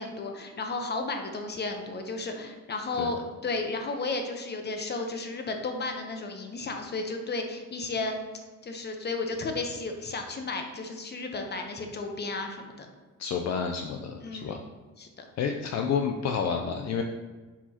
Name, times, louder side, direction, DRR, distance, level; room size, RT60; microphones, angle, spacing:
voice 1, 0.0-8.1 8.6-12.9 14.2-14.6 15.0-15.2, left 3 dB, 35° left, 4 dB, 0.9 m, -33 dB
voice 2, 13.2-14.6 15.4-17.0, left 6 dB, 60° left, 3 dB, 0.5 m, -29 dB
7.1 x 4.7 x 2.9 m, 1.3 s
cardioid pair, 90°, 30 cm